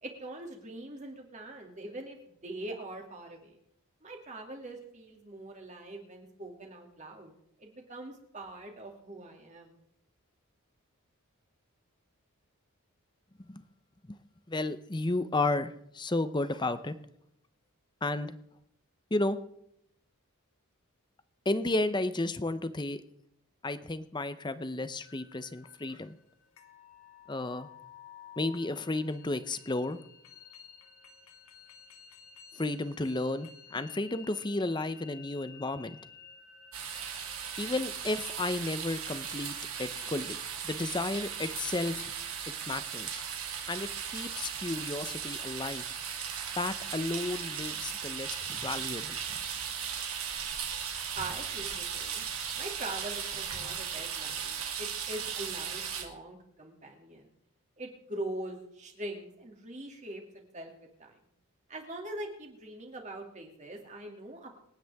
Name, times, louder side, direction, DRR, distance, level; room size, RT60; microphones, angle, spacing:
voice 1, 0.0-3.6 4.0-7.3 7.6-9.8 51.1-52.2 52.5-57.3 57.8-60.7 61.0-61.1 61.7-64.5, right 1 dB, 30° right, 2 dB, 2.5 m, -42 dB
voice 2, 14.5-17.0 18.0-18.3 19.1-19.4 21.5-23.0 23.6-26.2 27.3-27.7 28.4-30.0 32.6-36.0 37.6-42.1 42.7-43.2 43.7-45.8 46.6-49.2, left 2 dB, 20° left, 12 dB, 0.7 m, -33 dB
sound 1, 25.0-40.9, left 6 dB, 70° left, 1.7 m, -54 dB
sound 2, 36.7-56.0, right 7 dB, 75° right, 2.4 m, -37 dB
26.5 x 9.4 x 3.5 m, 0.76 s
head